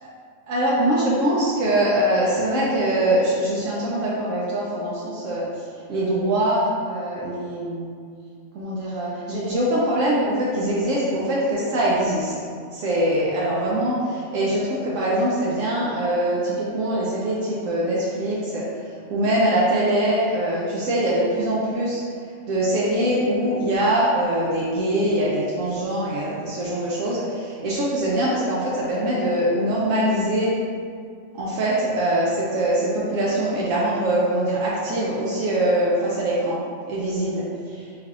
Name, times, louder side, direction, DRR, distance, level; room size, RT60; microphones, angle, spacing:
voice 1, 0.5-5.5 5.9-7.9 8.5-12.3 12.7-18.6 19.1-22.0 22.5-30.5 31.3-36.6 36.9-37.8, right 1 dB, 85° right, -6 dB, 1.0 m, -23 dB
4.3 x 3.3 x 2.4 m, 2.2 s
omnidirectional pair, 1.3 m